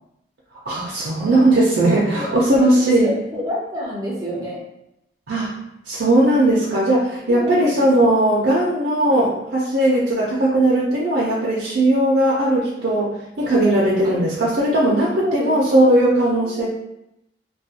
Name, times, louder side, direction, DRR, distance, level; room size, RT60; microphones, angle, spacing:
voice 1, 0.7-3.1 5.3-5.5 5.9-16.7, right 1 dB, 80° right, -7 dB, 0.5 m, -18 dB
voice 2, 1.8-2.3 2.6-2.7 3.0-4.6 7.3-8.1 14.0-14.2 15.2-16.0 16.3-16.7, equal, 20° right, -5 dB, 0.4 m, -29 dB
2.3 x 2.2 x 2.7 m, 0.83 s
head